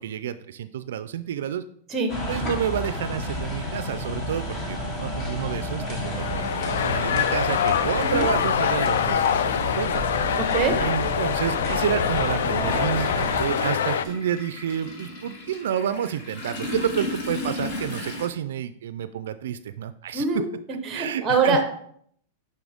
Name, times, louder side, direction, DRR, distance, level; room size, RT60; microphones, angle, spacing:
voice 1, 0.0-1.6 2.3-10.0 10.8-20.3 20.9-21.6, right 9 dB, 75° right, 13 dB, 0.3 m, -29 dB
sound 1, 2.1-13.4, equal, 20° left, 1.2 m, -31 dB
sound 2, 6.0-14.0, left 8 dB, 85° left, 0.4 m, -25 dB
Toilet flush, 7.8-7.9 9.1-9.3 9.6-18.3, left 2 dB, 45° left, 1.8 m, -35 dB
voice 2, 10.4-10.7 20.1-20.4 20.9-21.6, right 4 dB, 15° right, 6 dB, 0.9 m, -23 dB
6.2 x 5.4 x 3.5 m, 0.64 s
supercardioid pair, 170°, 0 cm